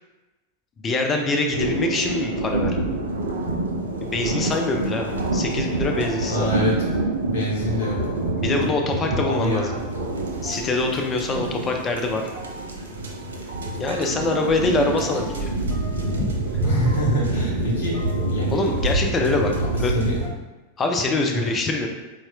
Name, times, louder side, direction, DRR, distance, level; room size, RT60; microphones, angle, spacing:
voice 1, 0.8-2.9 4.0-6.5 8.4-9.7 10.4-12.3 13.8-15.5 16.2-16.3 18.5-19.5 19.8-20.0 20.8-21.9, left 2 dB, 25° left, 3 dB, 0.4 m, -24 dB
sound 1, 1.5-20.3, right 2 dB, 65° right, 0.4 m, -26 dB
sound 2, 3.3-3.8 4.1-4.9 5.2-5.6 5.9-6.5 6.7-7.3 7.8-8.3 8.6-8.7 9.0-9.1 9.3-9.4 9.7-9.8 10.1-10.2 10.4-11.6 11.9-12.8 13.1-14.6 14.9-15.4 15.7-16.6 16.9-17.3 17.6-18.3 18.7-19.2 19.5-19.9 20.2-20.3, right 1 dB, 50° right, 0.9 m, -42 dB
voice 2, 6.3-6.8 7.3-8.0 9.2-9.8 16.6-18.0 18.3-18.6 19.9-20.2 21.3-21.4, equal, 60° left, -3 dB, 0.9 m, -25 dB
4.1 x 2.3 x 2.3 m, 1.1 s
figure-of-eight pair, 90°, 0 cm